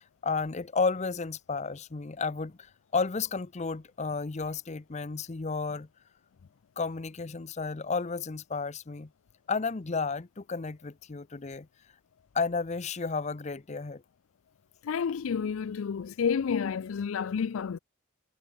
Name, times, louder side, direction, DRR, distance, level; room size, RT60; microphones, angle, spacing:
voice 1, 0.0-5.9 6.8-9.1 9.5-11.7 12.3-14.0, left 4 dB, 35° left, 0.6 m, -32 dB
voice 2, 14.8-17.8, left 6 dB, 75° left, 0.4 m, -30 dB
head